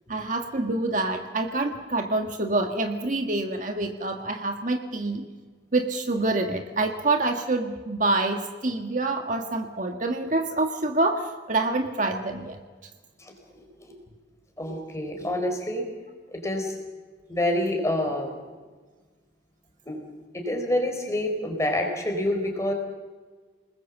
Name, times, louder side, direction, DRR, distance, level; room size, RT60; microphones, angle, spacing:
voice 1, 0.1-5.3 5.7-12.6, right 2 dB, 45° right, 4 dB, 1.7 m, -26 dB
voice 2, 13.2-13.9 14.6-15.9 16.3-16.7 17.3-18.4 19.9-20.0 20.3-22.7, left 1 dB, 15° left, 3 dB, 4.3 m, -27 dB
28.5 x 20.5 x 7.3 m, 1.4 s
head